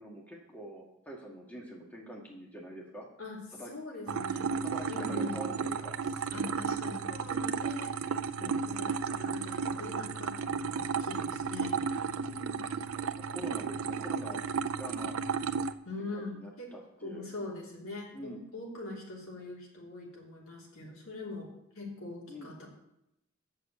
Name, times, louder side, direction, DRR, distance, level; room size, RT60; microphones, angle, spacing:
voice 1, 0.0-3.1 3.6-3.7 4.6-5.9 8.4-8.7 12.2-12.7 13.3-14.5 14.8-15.2 16.0-17.3 18.1-18.4 22.3-22.5, equal, 10° left, -2 dB, 1.7 m, -45 dB
voice 2, 3.2-4.6 4.9-5.4 6.3-7.9 8.4-11.8 15.8-16.7 17.0-21.5 21.7-22.7, left 2 dB, 85° left, -3 dB, 3.3 m, -42 dB
sound 1, 4.1-15.7, right 5 dB, 80° right, 0.5 m, -33 dB
8.2 x 6.6 x 8.1 m, 0.82 s
head